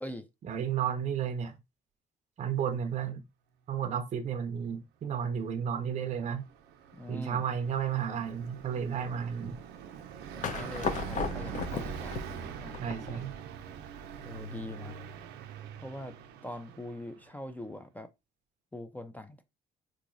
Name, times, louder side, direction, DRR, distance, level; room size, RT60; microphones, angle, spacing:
voice 1, 0.4-1.6 2.4-3.2 3.7-6.4 7.1-9.6 12.8-13.4, right 8 dB, 45° right, 0.5 m, -32 dB
Car passing by, 6.2-17.2, right 7 dB, 85° right, 0.5 m, -43 dB
voice 2, 7.0-7.4 10.3-12.8 14.2-15.0 15.8-16.1 16.4-18.1 18.7-19.4, left 1 dB, 10° left, 0.4 m, -43 dB
sound 1, 10.4-13.4, left 5 dB, 50° left, 0.6 m, -36 dB
3.9 x 2.8 x 2.5 m
cardioid pair, 100°, 17 cm